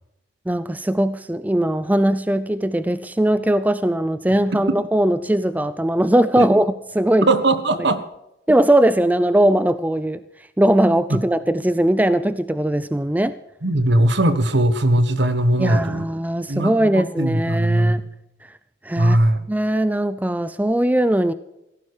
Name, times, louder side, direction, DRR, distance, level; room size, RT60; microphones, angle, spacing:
voice 1, 0.5-7.3 8.5-10.2 10.6-13.3 15.6-18.0 18.8-19.2 19.5-21.3, right 1 dB, 10° right, 14 dB, 0.4 m, -19 dB
voice 2, 7.3-8.0 11.1-11.2 13.6-16.1 16.5-18.0 19.0-19.5, right 1 dB, 60° right, 11 dB, 1.4 m, -19 dB
16.5 x 14.5 x 4.8 m, 0.88 s
head